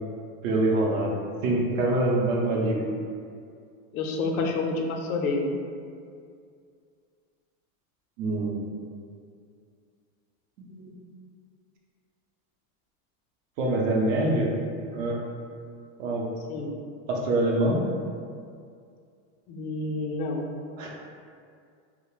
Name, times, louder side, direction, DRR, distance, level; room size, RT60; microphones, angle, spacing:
voice 1, 0.4-2.8 8.2-8.6 10.7-10.9 13.6-14.5 14.9-15.2 16.0-16.2 17.1-17.8 20.8-20.9, right 2 dB, 65° right, -2 dB, 0.6 m, -25 dB
voice 2, 3.9-5.5 16.5-16.7 19.5-20.5, left 3 dB, 85° left, 2 dB, 0.5 m, -28 dB
2.3 x 2.0 x 3.0 m, 2.3 s
supercardioid pair, 150°, 42 cm